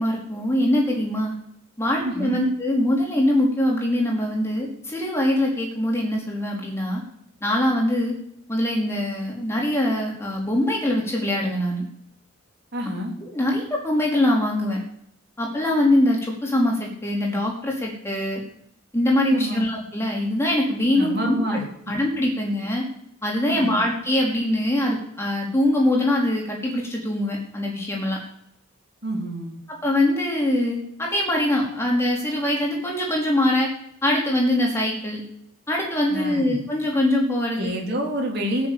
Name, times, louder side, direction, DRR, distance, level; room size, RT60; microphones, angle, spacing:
voice 1, 0.0-1.3 1.8-7.0 7.4-8.2 8.5-11.9 13.3-14.8 15.4-18.4 18.9-21.6 21.9-22.9 23.2-28.2 29.7-33.7 34.0-35.2 35.7-37.7, left 1 dB, 15° left, -2 dB, 3.9 m, -23 dB
voice 2, 2.0-2.4 12.7-13.1 19.3-19.6 20.9-21.6 23.5-23.8 29.0-29.6 36.1-36.6 37.5-38.7, equal, 50° right, 0 dB, 3.6 m, -27 dB
17.0 x 7.0 x 8.5 m, 0.70 s
head